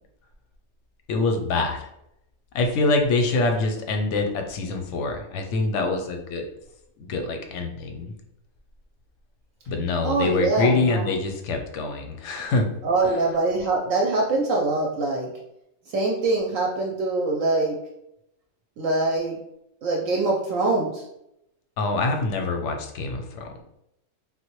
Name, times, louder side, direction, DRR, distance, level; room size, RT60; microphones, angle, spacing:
voice 1, 1.1-1.9 2.5-6.4 7.0-8.1 9.7-12.7 21.8-23.6, left 3 dB, 65° left, 4 dB, 0.7 m, -25 dB
voice 2, 10.0-11.1 12.8-15.3 15.9-17.8 18.8-19.4 19.8-21.0, right 3 dB, 70° right, -1 dB, 0.9 m, -24 dB
3.6 x 2.1 x 3.0 m, 0.81 s
omnidirectional pair, 1.5 m